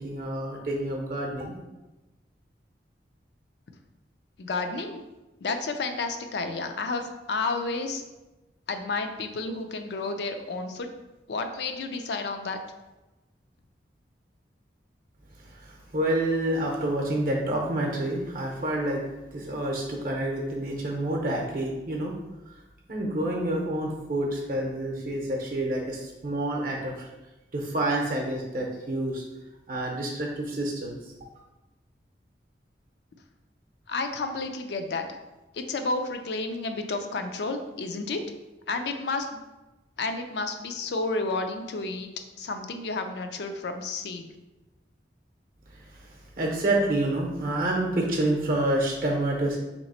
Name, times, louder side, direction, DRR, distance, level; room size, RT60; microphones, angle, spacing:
voice 1, 0.0-1.5 15.4-19.0 19.3-22.2 22.9-27.1 27.5-29.2 29.7-31.0 45.7-46.1 46.4-49.6, right 1 dB, 50° right, 0 dB, 0.6 m, -28 dB
voice 2, 4.4-5.0 5.4-8.0 8.7-10.9 11.3-12.6 33.9-35.0 35.5-38.2 38.7-39.3 40.0-42.1 42.4-44.3, left 3 dB, 70° left, 6 dB, 0.4 m, -31 dB
3.2 x 2.9 x 4.1 m, 1.1 s
head